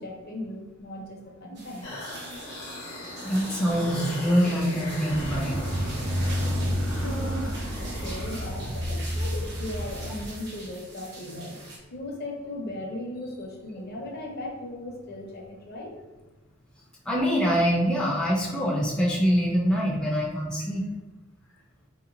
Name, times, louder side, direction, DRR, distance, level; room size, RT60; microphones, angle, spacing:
voice 1, 0.0-1.9 6.8-16.0, left 1 dB, 50° left, 1 dB, 0.6 m, -37 dB
sound 1, 1.5-11.8, right 2 dB, 55° right, 0.8 m, -44 dB
sound 2, 1.8-8.7, left 1 dB, 80° left, 0.8 m, -39 dB
voice 2, 3.2-5.6 17.1-20.9, equal, 5° left, -4 dB, 0.4 m, -24 dB
sound 3, 5.1-10.3, equal, 90° right, 0.6 m, -30 dB
3.4 x 2.8 x 2.5 m, 1.1 s
head